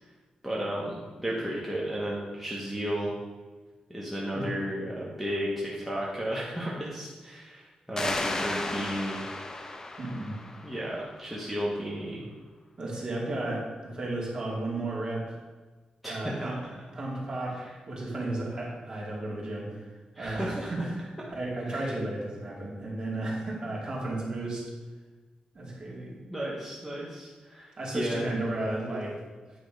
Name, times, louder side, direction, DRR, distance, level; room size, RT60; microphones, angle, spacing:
voice 1, 0.4-3.1 3.9-9.2 10.6-12.2 16.0-16.6 17.5-17.7 20.1-20.7 21.6-21.8 26.3-28.2, equal, 5° right, -6 dB, 1.3 m, -33 dB
sound 1, 8.0-11.3, left 2 dB, 25° left, 0.6 m, -34 dB
voice 2, 10.0-10.4 12.8-15.4 16.0-16.6 16.9-20.9 21.3-24.6 25.5-26.1 27.8-29.2, right 2 dB, 35° right, -4 dB, 2.5 m, -33 dB
9.0 x 4.9 x 5.1 m, 1.3 s
wide cardioid pair, 135°, 2 cm